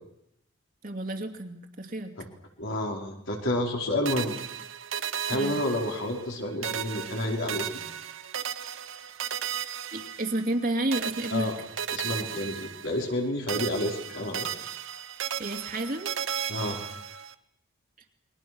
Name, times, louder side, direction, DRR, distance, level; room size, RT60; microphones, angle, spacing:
voice 1, 0.8-2.1 5.3-5.6 9.9-11.5 15.4-16.1, right 1 dB, 40° right, 4 dB, 2.6 m, -31 dB
voice 2, 2.6-4.4 5.3-7.8 11.3-11.5 11.9-14.5 16.5-16.8, left 1 dB, 65° left, 0 dB, 5.2 m, -30 dB
sound 1, 4.0-6.3 6.6-10.6 10.9-13.2 13.5-17.3, right 8 dB, 65° right, 1.2 m, -35 dB
29.5 x 23.0 x 6.3 m, 0.76 s
head